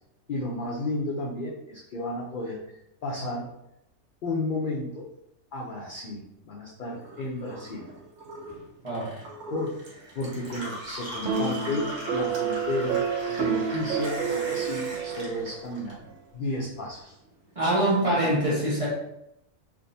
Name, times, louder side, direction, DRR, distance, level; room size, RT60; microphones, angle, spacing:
voice 1, 0.3-3.5 4.2-5.1 5.5-7.9 9.5-9.8 10.2-13.0 13.3-16.0 16.3-17.2 18.2-18.4, left 2 dB, 75° left, -3 dB, 0.4 m, -33 dB
Gurgling / Water tap faucet / Sink (filling or washing), 6.9-16.4 16.7-17.6, equal, 90° right, 1.4 m, -40 dB
voice 2, 8.8-9.2 17.5-18.9, right 1 dB, 30° right, -7 dB, 0.8 m, -24 dB
sound 1, 10.6-15.4, equal, 35° left, 1.1 m, -47 dB
sound 2, 11.3-15.7, right 6 dB, 70° right, 0.9 m, -29 dB
3.5 x 2.6 x 2.6 m, 0.83 s
omnidirectional pair, 1.5 m